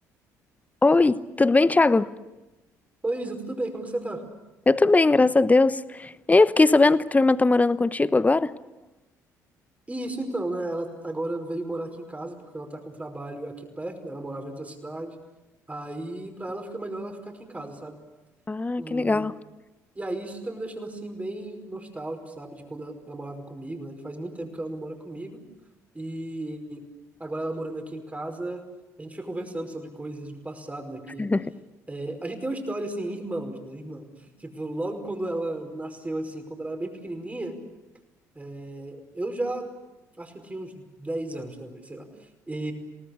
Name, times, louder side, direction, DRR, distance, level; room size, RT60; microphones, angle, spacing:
voice 1, 0.8-2.1 4.7-8.5 18.5-19.3 31.2-31.5, left 3 dB, 15° left, 17 dB, 1.0 m, -20 dB
voice 2, 3.0-4.2 9.9-15.2 15.7-18.0 18.8-19.3 20.0-25.4 25.9-26.8 27.2-28.6 29.0-31.3 31.9-37.6 38.4-39.7 40.2-42.7, right 2 dB, 15° right, 5 dB, 5.2 m, -34 dB
28.0 x 19.0 x 8.5 m, 1.0 s
figure-of-eight pair, 50°, 9 cm